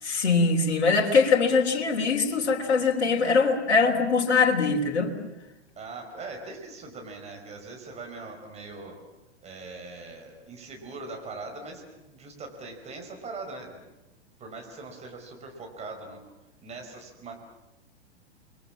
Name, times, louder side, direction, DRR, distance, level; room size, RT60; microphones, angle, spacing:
voice 1, 0.0-5.1, left 4 dB, 65° left, 1 dB, 3.6 m, -22 dB
voice 2, 5.8-9.0 9.4-11.8 12.1-13.9 14.4-16.2 16.6-17.3, right 3 dB, 20° right, 3 dB, 5.3 m, -41 dB
29.5 x 23.0 x 7.5 m, 1.0 s
figure-of-eight pair, 105°, 35 cm